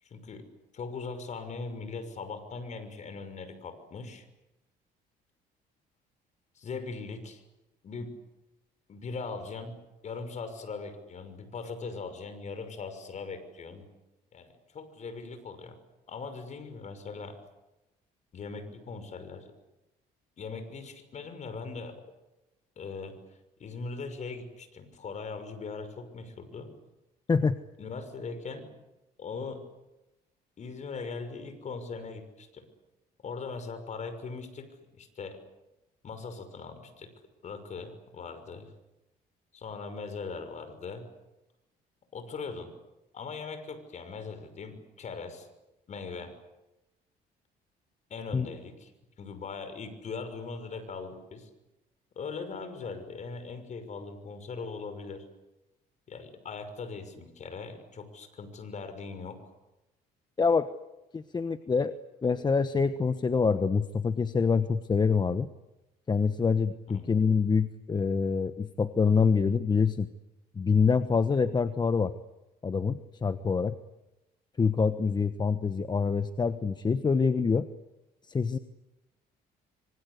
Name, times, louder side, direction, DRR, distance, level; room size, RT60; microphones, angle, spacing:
voice 1, 0.0-0.5 0.7-4.3 6.5-7.4 7.8-8.1 8.9-9.8 10.0-13.8 14.3-15.8 16.1-17.4 18.3-19.5 20.4-22.0 22.8-23.2 23.6-26.7 27.8-28.7 29.2-29.6 30.6-32.6 33.2-35.4 36.0-37.1 37.4-38.7 39.5-41.0 42.1-42.7 43.1-45.5 45.9-46.4 48.1-48.9 49.2-51.5 52.1-55.2 56.1-59.5 66.9-67.1, left 4 dB, 45° left, 9 dB, 6.1 m, -40 dB
voice 2, 60.4-60.7 61.1-61.9 62.2-65.5 66.1-70.1 70.5-72.1 72.6-73.8 74.6-77.7 78.3-78.6, left 5 dB, 25° left, 11 dB, 1.2 m, -26 dB
26.0 x 25.0 x 8.3 m, 0.97 s
cardioid pair, 110°, 17 cm